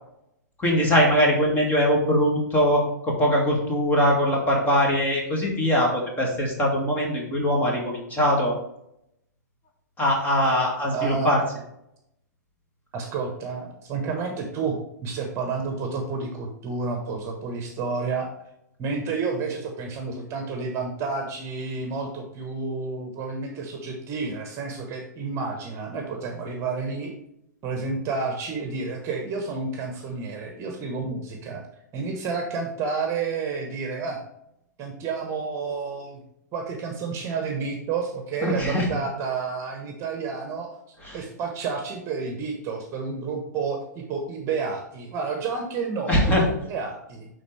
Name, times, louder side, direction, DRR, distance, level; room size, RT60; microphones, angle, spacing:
voice 1, 0.6-8.5 10.0-11.4 38.4-38.9 41.0-41.2 46.1-46.5, equal, 15° left, -1 dB, 2.2 m, -22 dB
voice 2, 10.9-11.3 12.9-18.3 18.8-27.1 27.6-31.6 31.9-34.2 34.8-36.2 36.5-40.7 41.1-47.3, right 4 dB, 30° right, 3 dB, 1.2 m, -30 dB
10.5 x 3.9 x 3.3 m, 0.78 s
figure-of-eight pair, 110°, 10 cm